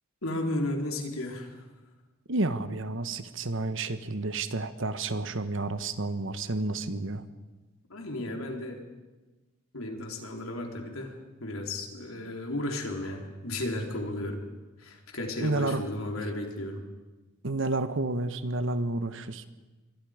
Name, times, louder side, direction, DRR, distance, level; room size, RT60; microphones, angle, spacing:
voice 1, 0.2-1.6 7.9-8.8 9.7-11.1 11.4-14.4 14.8-16.8, left 1 dB, 85° left, 2 dB, 3.8 m, -34 dB
voice 2, 2.3-7.2 15.4-15.8 17.4-19.5, right 2 dB, 65° right, 11 dB, 1.3 m, -30 dB
28.0 x 23.0 x 5.1 m, 1.2 s
head